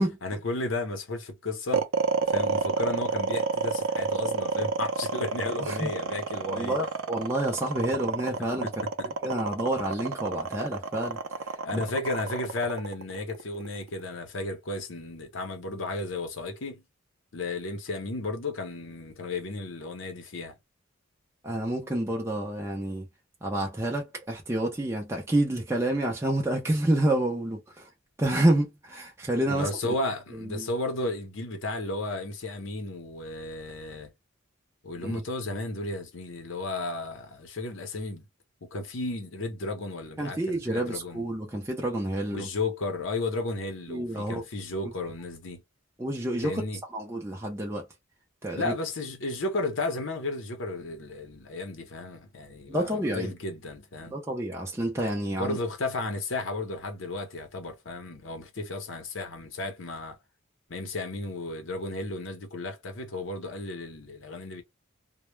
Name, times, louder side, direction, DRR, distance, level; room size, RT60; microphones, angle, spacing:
voice 1, 0.2-1.9 2.3-6.8 8.6-8.7 9.0-9.1 11.6-16.8 17.3-20.5 29.5-34.1 34.8-38.2 38.6-41.2 42.3-45.6 46.4-46.8 48.5-54.2 55.3-60.2 60.7-64.6, left 2 dB, 65° left, 0.7 m, -33 dB
sound 1, 1.7-14.0, right 4 dB, 85° right, 0.5 m, -29 dB
voice 2, 5.6-5.9 6.5-8.7 9.2-11.8 21.4-23.1 23.4-27.9 28.2-29.7 30.3-30.7 35.0-35.1 40.2-42.5 43.9-44.4 46.0-46.6 46.9-47.9 48.4-48.7 52.7-53.3 54.1-55.6, right 1 dB, 15° right, 0.5 m, -28 dB
2.1 x 2.0 x 3.1 m
head